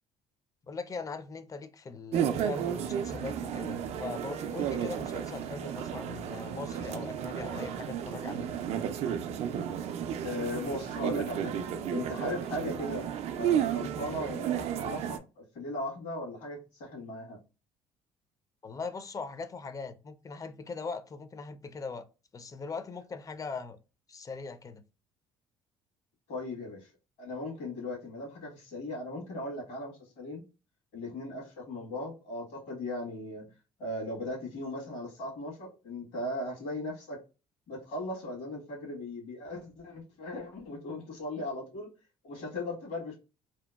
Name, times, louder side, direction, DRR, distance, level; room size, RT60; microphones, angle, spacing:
voice 1, 0.7-8.5 18.6-22.0 22.3-23.8 24.1-24.8, left 4 dB, 25° left, 0.4 m, -40 dB
sound 1, 2.1-15.2, right 9 dB, 60° right, 0.4 m, -33 dB
voice 2, 10.2-11.5 11.9-13.1 13.3-17.4 26.3-26.9 27.2-30.4 30.9-33.4 33.8-37.2 37.7-41.9 42.2-43.2, left 1 dB, 70° left, 1.3 m, -38 dB
2.8 x 2.2 x 2.2 m
hypercardioid pair, 65°, 12 cm